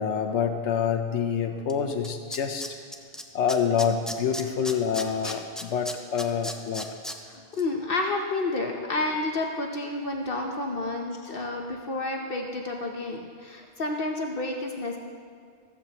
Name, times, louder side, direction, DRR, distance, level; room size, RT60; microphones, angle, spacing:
voice 1, 0.0-2.6 3.3-6.9, left 7 dB, 85° left, 6 dB, 1.0 m, -27 dB
Tools, 1.7-1.8 2.0-3.2 3.5-7.2 7.5-7.6, equal, ahead, 0.5 m, -35 dB
voice 2, 7.3-15.0, left 2 dB, 55° left, 2 dB, 1.0 m, -30 dB
14.5 x 14.0 x 2.9 m, 2.1 s
omnidirectional pair, 1.1 m